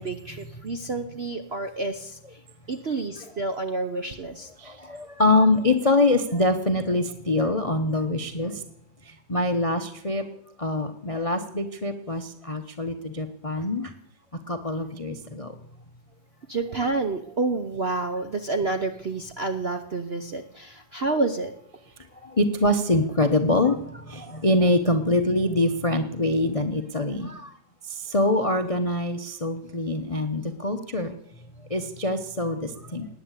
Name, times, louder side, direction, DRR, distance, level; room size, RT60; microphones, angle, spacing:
voice 1, 0.0-2.2 2.7-4.5 16.5-21.5, right 3 dB, 50° right, 7 dB, 0.7 m, -29 dB
voice 2, 4.6-8.6 9.3-10.2 10.6-13.9 14.5-15.5 22.2-27.5 27.9-31.2 31.7-33.1, left 2 dB, 35° left, 8 dB, 0.5 m, -24 dB
19.0 x 9.1 x 8.2 m, 0.72 s
omnidirectional pair, 2.2 m